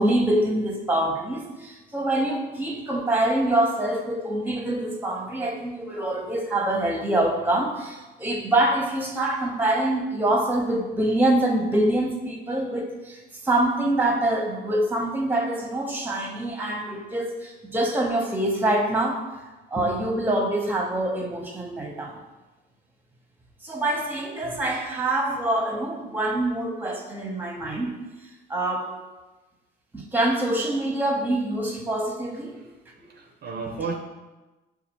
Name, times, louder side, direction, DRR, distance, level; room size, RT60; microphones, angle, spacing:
voice 1, 0.0-19.2 19.7-22.2 23.6-27.9 28.5-28.9 29.9-32.6, right 1 dB, 10° right, 0 dB, 0.8 m, -25 dB
voice 2, 33.0-33.9, right 5 dB, 55° right, 2 dB, 0.5 m, -33 dB
6.5 x 2.4 x 2.9 m, 1.1 s
cardioid pair, 90°, 20 cm